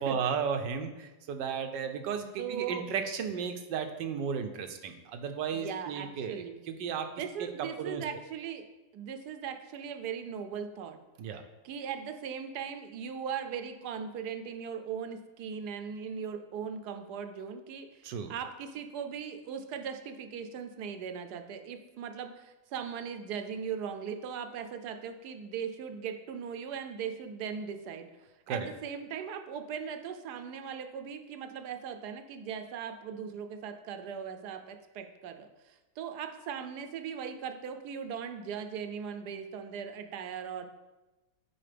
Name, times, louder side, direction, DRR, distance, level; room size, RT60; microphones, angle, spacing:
voice 1, 0.0-7.1 7.4-8.0 11.2-11.4 18.0-18.3 28.5-28.7, right 6 dB, 85° right, 6 dB, 1.4 m, -34 dB
voice 2, 2.4-2.8 5.5-6.6 7.2-8.6 8.9-11.0 11.6-28.1 28.5-40.7, right 7 dB, 70° right, 8 dB, 1.2 m, -39 dB
9.9 x 4.7 x 3.4 m, 1.1 s
omnidirectional pair, 1.9 m